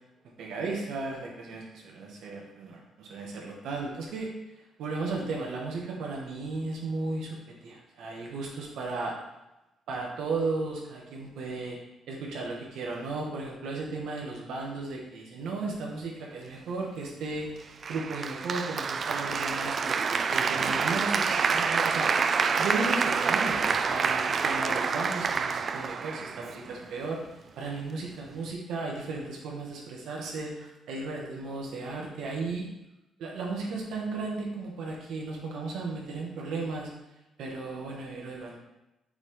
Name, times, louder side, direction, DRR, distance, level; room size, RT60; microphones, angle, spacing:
voice 1, 0.4-4.3 4.8-7.4 7.6-9.1 9.9-11.8 12.1-22.2 22.5-27.2 27.6-32.7 33.2-36.9 37.4-38.6, right 3 dB, 80° right, -1 dB, 1.9 m, -35 dB
Applause, 17.8-26.8, right 5 dB, 45° right, 0.4 m, -27 dB
6.9 x 6.0 x 3.9 m, 0.95 s
cardioid pair, 90°, 0 cm